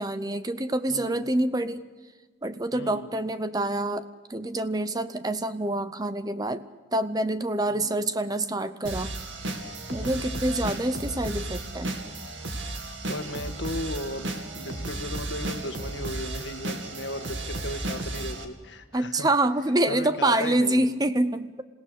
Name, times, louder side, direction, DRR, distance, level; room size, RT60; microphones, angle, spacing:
voice 1, 0.0-1.8 2.4-6.6 6.9-9.1 9.4-9.6 9.9-12.0 18.9-21.6, right 1 dB, 20° right, 12 dB, 0.6 m, -26 dB
voice 2, 0.9-1.3 2.7-3.1 7.7-8.0 10.0-10.5 12.8-19.3 19.9-20.9, left 1 dB, 65° left, 7 dB, 1.7 m, -36 dB
sound 1, 8.8-18.4, right 2 dB, 75° right, 2.4 m, -34 dB
27.5 x 17.5 x 6.7 m, 1.3 s
head